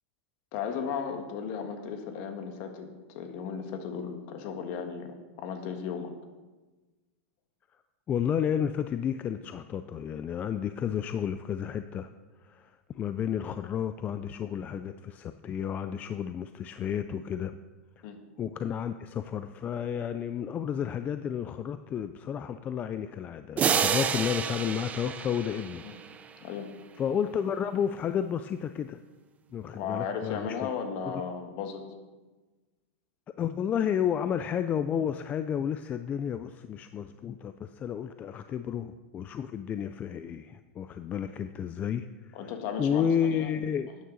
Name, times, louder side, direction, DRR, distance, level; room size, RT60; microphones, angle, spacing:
voice 1, 0.5-2.9 3.1-6.1 18.0-18.2 25.8-26.0 26.4-26.7 29.7-31.8 42.3-43.5, left 6 dB, 45° left, 6 dB, 1.6 m, -35 dB
voice 2, 8.1-12.1 12.4-17.6 18.4-25.8 26.2-26.3 27.0-29.0 29.5-30.7 33.4-42.5 42.8-43.9, left 8 dB, 20° left, 10 dB, 0.3 m, -31 dB
sound 1, 23.6-26.3, right 7 dB, 20° right, 0.6 m, -29 dB
12.5 x 9.5 x 4.0 m, 1.2 s
supercardioid pair, 145°, 7 cm